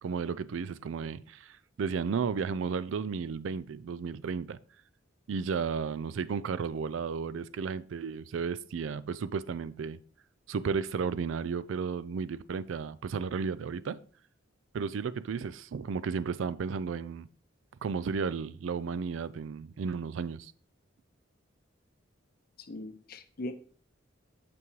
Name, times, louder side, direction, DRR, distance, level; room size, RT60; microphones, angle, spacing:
voice 1, 0.0-4.6 5.3-10.0 10.5-14.0 14.7-17.3 17.8-20.5, right 5 dB, 75° right, 0.4 m, -33 dB
voice 2, 22.6-23.5, left 1 dB, 50° left, 0.6 m, -40 dB
6.9 x 5.8 x 3.1 m
head